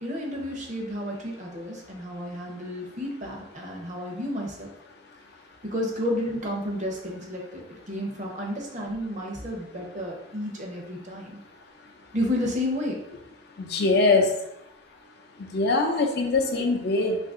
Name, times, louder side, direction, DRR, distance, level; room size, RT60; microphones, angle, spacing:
voice 1, 0.0-4.7 5.6-7.6 7.9-11.4 12.1-13.0, left 1 dB, 40° right, -1 dB, 0.7 m, -31 dB
voice 2, 13.6-14.3 15.5-17.2, left 3 dB, 60° left, 3 dB, 0.5 m, -22 dB
2.7 x 2.5 x 3.6 m, 0.79 s
head